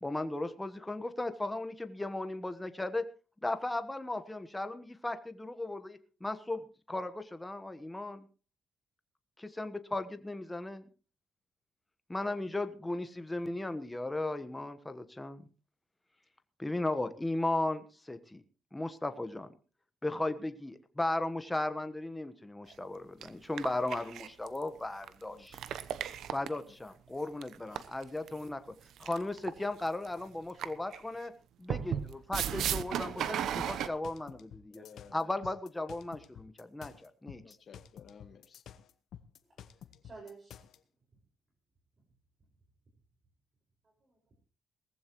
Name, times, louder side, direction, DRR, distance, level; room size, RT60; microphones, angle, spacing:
voice 1, 0.0-3.0 3.4-8.2 9.4-10.8 12.1-15.4 16.6-18.4 18.7-19.5 20.0-25.6 26.3-28.6 29.0-31.3 31.6-34.8 35.1-37.6, left 2 dB, 10° left, 10 dB, 1.2 m, -36 dB
sound 1, 22.7-22.8 23.2-23.3 23.6-24.6 25.0-25.1 25.5-26.6 27.4-28.3 29.0-29.6 29.9-30.1 30.6-31.0 31.7-33.9, right 9 dB, 75° right, 0.9 m, -35 dB
sound 2, 33.6-40.8, left 9 dB, 70° left, 0.9 m, -51 dB
voice 2, 34.7-35.3 37.4-38.6, left 6 dB, 50° left, 6 dB, 1.6 m, -55 dB
voice 3, 39.4-40.7 43.8-44.3, right 4 dB, 35° right, 1 dB, 5.2 m, -53 dB
19.0 x 15.0 x 3.1 m, 0.35 s
cardioid pair, 90°, 0 cm